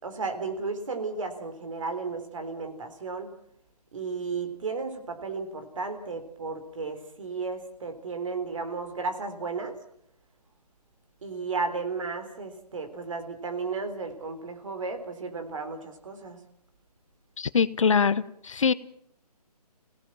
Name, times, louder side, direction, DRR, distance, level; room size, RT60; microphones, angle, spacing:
voice 1, 0.0-3.3 3.9-9.8 11.2-16.4, right 4 dB, 50° right, 7 dB, 3.9 m, -34 dB
voice 2, 17.4-18.7, left 6 dB, 50° left, 16 dB, 0.9 m, -23 dB
27.0 x 17.5 x 7.6 m, 0.70 s
hypercardioid pair, 165°, 20 cm